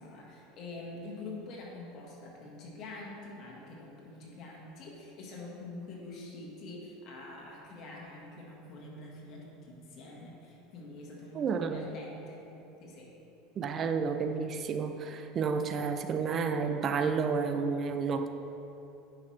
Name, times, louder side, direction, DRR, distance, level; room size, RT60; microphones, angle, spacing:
voice 1, 0.0-12.4 12.8-13.1, left 2 dB, 50° left, -2 dB, 1.6 m, -46 dB
voice 2, 11.3-11.9 13.6-18.3, right 5 dB, 35° right, 7 dB, 0.5 m, -31 dB
9.6 x 5.7 x 3.3 m, 2.9 s
supercardioid pair, 115°, 0 cm